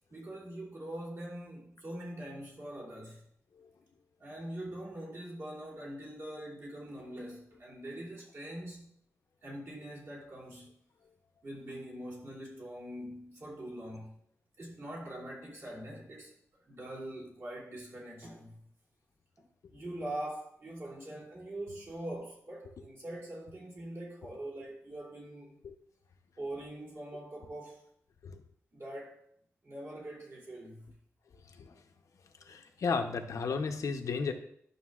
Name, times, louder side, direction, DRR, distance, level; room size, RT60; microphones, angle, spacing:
voice 1, 0.1-3.2 4.2-8.8 9.4-10.7 11.4-14.1 14.6-16.3 16.6-18.6 19.7-25.6 26.4-27.8 28.7-29.2 29.6-30.9, right 1 dB, 50° right, -4 dB, 2.9 m, -43 dB
voice 2, 32.5-34.3, left 5 dB, 80° left, 6 dB, 0.7 m, -34 dB
11.5 x 6.6 x 2.4 m, 0.65 s
wide cardioid pair, 165°, 5 cm